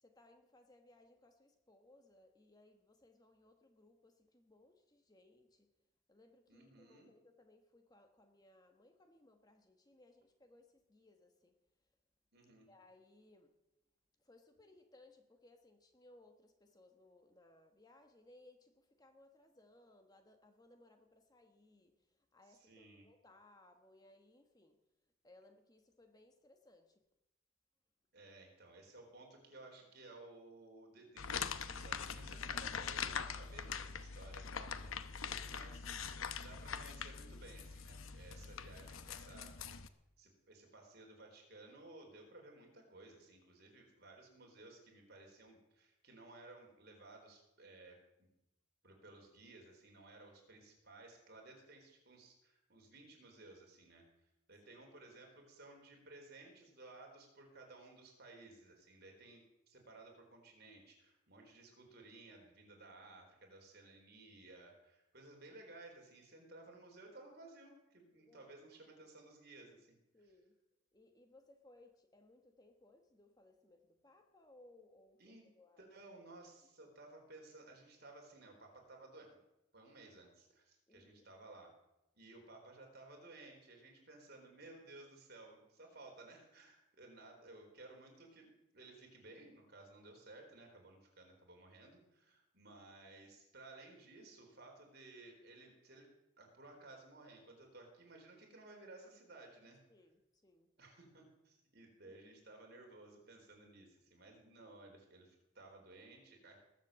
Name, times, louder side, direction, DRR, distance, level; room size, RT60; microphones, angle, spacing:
voice 1, 0.0-5.7 6.1-11.5 12.7-13.5 14.2-21.9 22.3-24.8 25.2-27.0 68.2-68.5 70.1-70.5 70.9-75.9 76.8-76.9 80.9-81.2 99.9-100.7 102.0-102.2, left 2 dB, 20° left, 6 dB, 1.2 m, -65 dB
voice 2, 6.5-7.1 12.3-12.7 22.4-23.1 28.1-39.6 40.2-48.3 48.8-54.0 54.5-70.0 75.2-75.4 75.8-79.4 79.7-81.7 82.1-99.8 100.8-106.6, right 2 dB, 50° right, 1 dB, 4.0 m, -57 dB
sound 1, 31.2-39.9, left 6 dB, 85° left, 0.9 m, -43 dB
20.0 x 7.5 x 7.4 m, 0.91 s
head